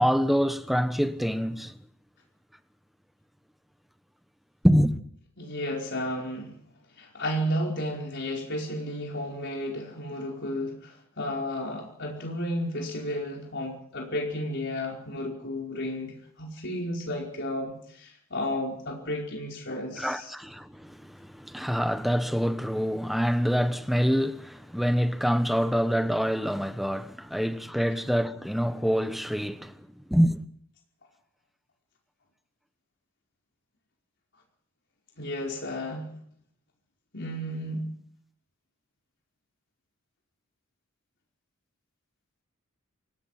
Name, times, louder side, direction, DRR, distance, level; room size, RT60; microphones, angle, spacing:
voice 1, 0.0-1.8 4.6-5.0 20.0-29.7 30.1-30.4, equal, ahead, 1.2 m, -26 dB
voice 2, 5.4-6.5 7.0-20.3 35.2-36.1 37.1-37.8, left 1 dB, 55° left, 5.0 m, -33 dB
27.5 x 18.0 x 5.9 m
head